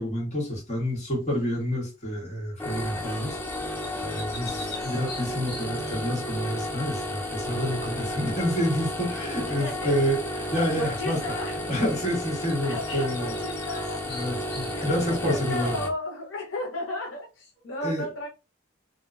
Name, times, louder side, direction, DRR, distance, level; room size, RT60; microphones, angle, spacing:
voice 1, 0.0-3.4 4.0-10.2 10.5-11.2 11.7-13.3 14.1-15.7 17.8-18.0, equal, 35° left, 1.2 m, -28 dB
sound 1, 1.3-1.6 3.4-6.0 12.4-12.5 12.8-15.2, left 3 dB, 50° left, 1.0 m, -44 dB
sound 2, 2.6-15.9, left 1 dB, 10° left, 0.3 m, -33 dB
voice 2, 9.4-10.0 10.8-11.6 12.6-14.1 14.7-18.3, left 2 dB, 75° left, 0.7 m, -34 dB
2.7 x 2.2 x 2.4 m
head